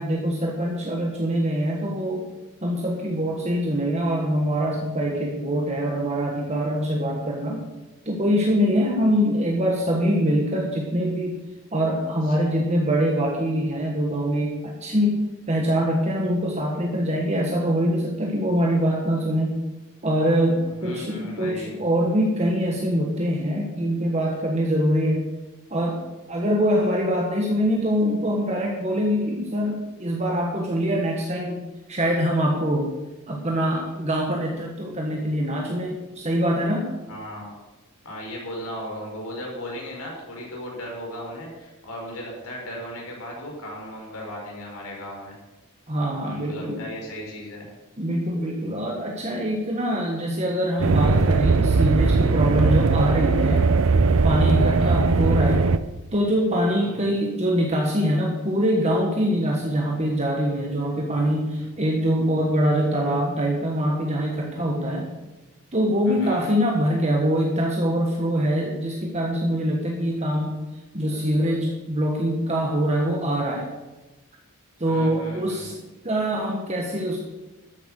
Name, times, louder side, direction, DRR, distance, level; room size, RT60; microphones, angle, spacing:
voice 1, 0.0-2.3 2.6-7.7 8.0-11.4 11.7-19.6 20.0-25.3 25.7-26.0 26.3-31.6 31.9-32.9 33.3-36.9 45.9-46.8 48.0-53.7 54.2-55.6 56.1-65.1 65.7-70.6 70.9-73.7 74.8-75.8 76.0-77.2, equal, 30° right, 0 dB, 1.4 m, -24 dB
voice 2, 20.8-21.8 37.1-37.6 38.0-45.4 46.2-47.7 54.6-55.0 56.8-57.2 66.0-66.4 74.9-75.7, equal, 75° left, -1 dB, 4.9 m, -36 dB
sound 1, 50.8-55.8, right 4 dB, 65° right, 0.6 m, -19 dB
13.0 x 8.3 x 6.5 m, 1.1 s
head